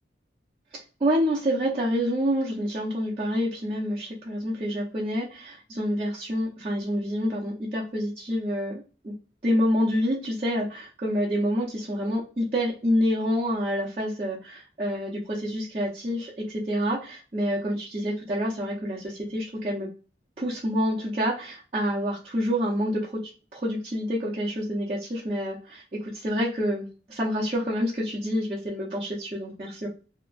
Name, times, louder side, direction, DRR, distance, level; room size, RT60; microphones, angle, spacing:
voice 1, 1.0-9.1 9.4-16.3 16.7-19.9 20.4-23.1 23.5-29.9, equal, 35° right, -8 dB, 0.7 m, -27 dB
2.8 x 2.4 x 2.4 m, 0.35 s
head